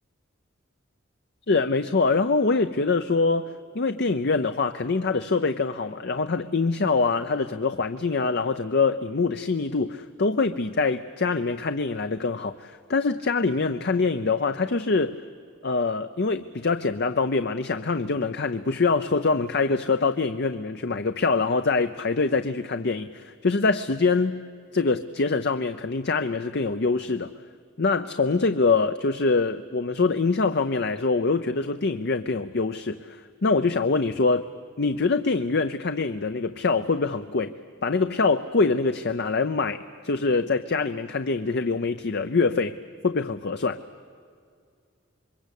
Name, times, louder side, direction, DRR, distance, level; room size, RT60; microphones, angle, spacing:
voice 1, 1.5-3.5 3.7-15.2 15.6-24.4 24.7-27.3 27.8-34.5 34.8-37.5 37.8-42.8 43.0-43.8, left 4 dB, 60° left, 9 dB, 0.7 m, -24 dB
27.0 x 23.0 x 8.4 m, 2.2 s
head